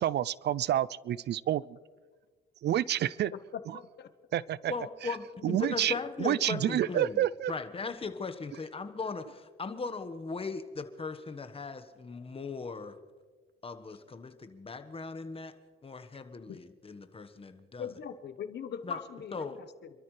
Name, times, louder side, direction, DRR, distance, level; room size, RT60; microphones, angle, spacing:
voice 1, 0.0-1.6 2.6-3.3 4.3-4.7 5.4-5.9 6.2-7.5, right 12 dB, 60° right, 21 dB, 0.4 m, -28 dB
voice 2, 4.7-12.9 13.6-15.5 15.8-17.9 18.8-19.0 19.3-19.6, left 4 dB, 30° left, 8 dB, 1.3 m, -38 dB
voice 3, 17.8-19.5, left 7 dB, 60° left, 10 dB, 1.1 m, -40 dB
27.5 x 13.0 x 3.3 m, 1.5 s
cardioid pair, 90°, 20 cm